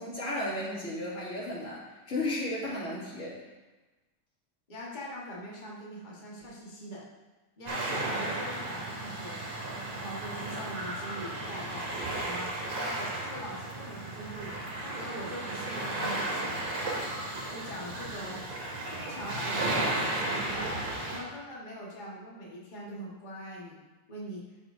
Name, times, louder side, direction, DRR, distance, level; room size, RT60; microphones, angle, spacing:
voice 1, 0.0-3.4, left 1 dB, 25° left, -8 dB, 2.6 m, -34 dB
voice 2, 4.7-7.0 7.6-9.4 10.0-16.6 17.5-18.4 19.0-20.8 21.0-23.8 24.1-24.4, equal, 50° left, -5 dB, 0.5 m, -42 dB
sound 1, 7.7-21.2, right 2 dB, 60° right, 3.0 m, -34 dB
13.0 x 6.0 x 2.6 m, 1.1 s
omnidirectional pair, 3.3 m